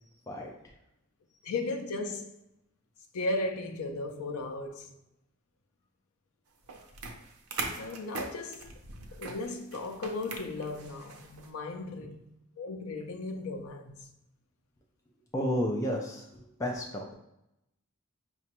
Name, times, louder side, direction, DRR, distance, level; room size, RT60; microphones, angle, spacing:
voice 1, 1.4-2.3 3.1-4.9 7.7-8.7 9.2-12.3 12.6-14.1, left 2 dB, 75° left, 0.4 m, -36 dB
sound 1, 6.6-11.5, right 3 dB, 85° right, 0.6 m, -41 dB
voice 2, 15.3-17.1, equal, 15° left, 0.3 m, -32 dB
4.8 x 2.2 x 2.9 m
head